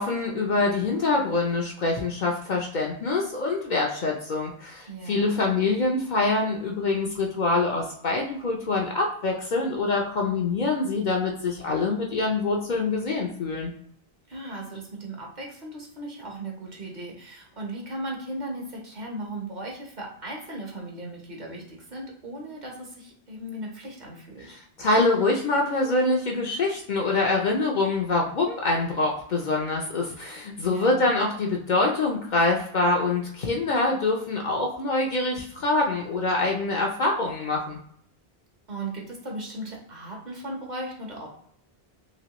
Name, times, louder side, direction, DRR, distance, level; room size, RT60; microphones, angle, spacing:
voice 1, 0.0-13.7 24.8-37.8, left 3 dB, 55° left, 0 dB, 0.6 m, -25 dB
voice 2, 4.9-5.5 14.3-24.6 30.6-31.1 38.7-41.3, right 1 dB, 50° right, -1 dB, 0.9 m, -37 dB
3.0 x 2.8 x 2.9 m, 0.65 s
omnidirectional pair, 1.0 m